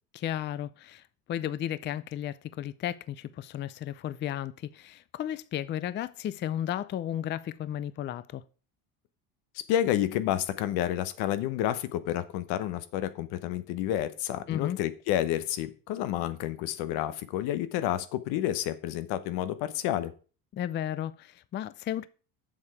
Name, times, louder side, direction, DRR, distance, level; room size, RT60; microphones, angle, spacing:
voice 1, 0.1-1.0 1.3-8.4 14.5-14.8 20.5-22.1, left 11 dB, 30° left, 0.4 m, -34 dB
voice 2, 9.5-20.1, left 12 dB, 80° left, 1.0 m, -30 dB
7.2 x 6.8 x 4.8 m
cardioid pair, 115°, 38 cm